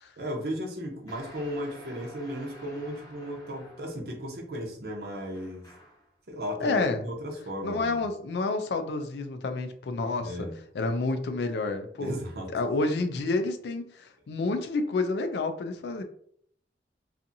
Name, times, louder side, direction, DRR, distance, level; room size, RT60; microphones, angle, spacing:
voice 1, 0.2-5.7 6.3-8.0 10.2-10.6 12.0-12.5, equal, 60° right, 1 dB, 0.6 m, -35 dB
sound 1, 1.1-4.1 5.3-6.1, equal, 20° left, 0.7 m, -50 dB
voice 2, 6.6-7.0 7.6-10.5 10.7-12.1 12.5-16.0, left 3 dB, 70° left, 7 dB, 0.3 m, -29 dB
2.6 x 2.4 x 2.6 m, 0.65 s
head